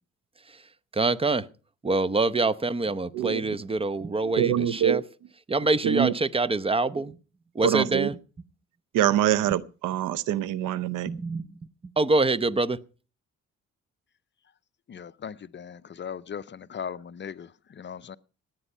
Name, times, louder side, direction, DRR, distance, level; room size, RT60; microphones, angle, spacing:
voice 1, 0.9-1.4 1.8-5.0 5.5-7.1 7.5-8.2 11.1-11.4 12.0-12.8, right 3 dB, 20° right, 0.8 m, -25 dB
voice 2, 3.1-3.6 4.2-5.0 5.8-6.1 7.6-8.1 8.9-11.1, right 11 dB, 90° right, 0.8 m, -25 dB
voice 3, 14.9-18.2, left 7 dB, 40° left, 0.6 m, -38 dB
17.0 x 9.3 x 5.5 m
cardioid pair, 90°, 30 cm